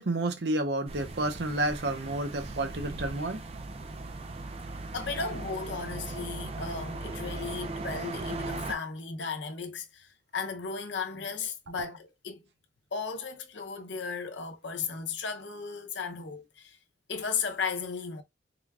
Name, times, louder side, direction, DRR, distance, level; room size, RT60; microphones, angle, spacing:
voice 1, 0.0-3.4, right 2 dB, 65° right, 0.7 m, -30 dB
sound 1, 0.9-8.7, right 2 dB, 35° right, 0.4 m, -38 dB
voice 2, 4.9-12.4 12.9-16.8 17.1-18.2, left 5 dB, 80° left, 0.8 m, -35 dB
3.8 x 2.3 x 3.5 m
head